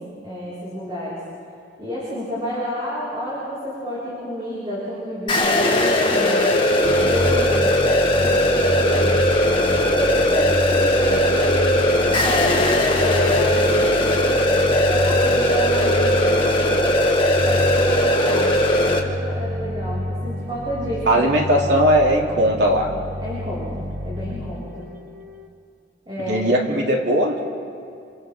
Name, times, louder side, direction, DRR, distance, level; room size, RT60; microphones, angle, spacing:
voice 1, 0.2-1.2 1.8-6.4 6.7-9.1 9.7-12.6 13.0-14.4 14.8-21.2 23.2-24.9 26.1-26.4, equal, 30° right, -9 dB, 7.5 m, -30 dB
sound 1, 5.3-19.0, left 1 dB, 30° left, 2.1 m, -19 dB
sound 2, 6.8-25.5, equal, 50° right, 1.4 m, -29 dB
voice 2, 21.1-22.9 26.3-27.4, equal, 75° right, -1 dB, 3.3 m, -18 dB
29.5 x 27.5 x 4.0 m, 2.5 s
head